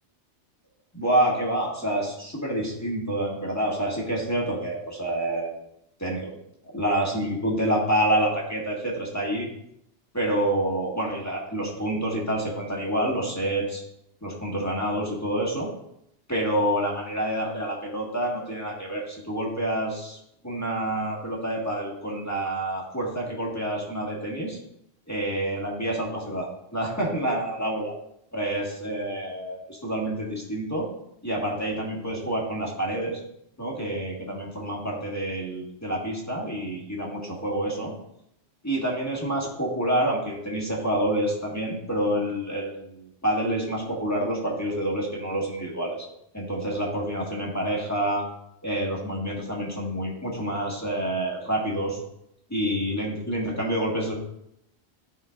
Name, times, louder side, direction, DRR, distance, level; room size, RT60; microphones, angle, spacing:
voice 1, 0.9-5.5 6.0-6.3 6.7-9.5 10.1-13.8 14.2-15.7 16.3-20.2 20.4-24.6 25.1-27.9 28.3-30.9 31.2-33.2 33.6-37.9 38.6-46.1 46.3-48.2 48.6-52.0 52.5-54.1, right 1 dB, 15° left, -3 dB, 1.8 m, -28 dB
12.5 x 5.5 x 2.4 m, 0.76 s
omnidirectional pair, 1.2 m